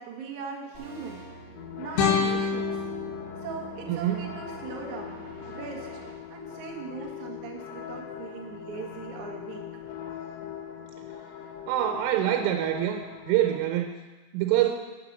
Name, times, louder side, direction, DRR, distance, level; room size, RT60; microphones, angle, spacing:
voice 1, 0.0-2.8 3.4-5.2 5.5-6.0 6.3-9.7, right 5 dB, 70° right, 0 dB, 1.8 m, -40 dB
sound 1, 0.7-6.1, right 2 dB, 40° right, 1.1 m, -46 dB
sound 2, 1.6-13.6, left 9 dB, 85° left, 3.4 m, -41 dB
sound 3, 2.0-5.0, left 6 dB, 65° left, 3.5 m, -29 dB
voice 2, 3.9-4.2 11.7-13.0 13.3-13.9 14.3-14.8, right 12 dB, 90° right, 5 dB, 3.3 m, -25 dB
8.9 x 7.6 x 7.2 m, 1.2 s
omnidirectional pair, 5.6 m